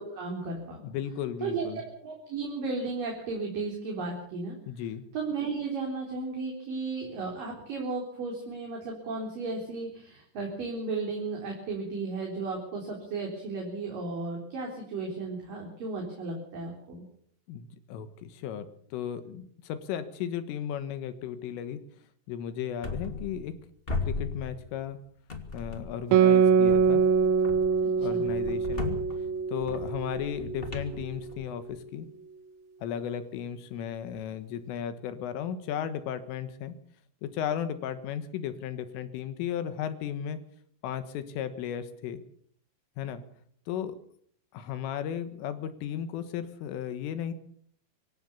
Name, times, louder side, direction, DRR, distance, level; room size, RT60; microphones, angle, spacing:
voice 1, 0.0-0.8 1.4-4.6 5.1-17.1 27.8-28.3, right 3 dB, 45° right, 0 dB, 5.2 m, -34 dB
voice 2, 0.8-1.8 4.7-5.0 17.5-21.8 22.3-23.5 24.0-25.0 25.5-27.0 28.0-29.0 29.5-32.1 32.8-36.8 37.2-40.4 40.8-42.2 43.0-43.2 43.7-44.0 44.5-47.3, left 9 dB, 75° left, 11 dB, 3.8 m, -35 dB
sound 1, 22.8-23.6 23.9-24.9 25.3-26.1 26.7-31.8, left 3 dB, 35° left, 0.9 m, -37 dB
Guitar, 26.1-31.1, right 6 dB, 85° right, 4.1 m, -24 dB
25.5 x 15.0 x 7.1 m, 0.63 s
omnidirectional pair, 6.0 m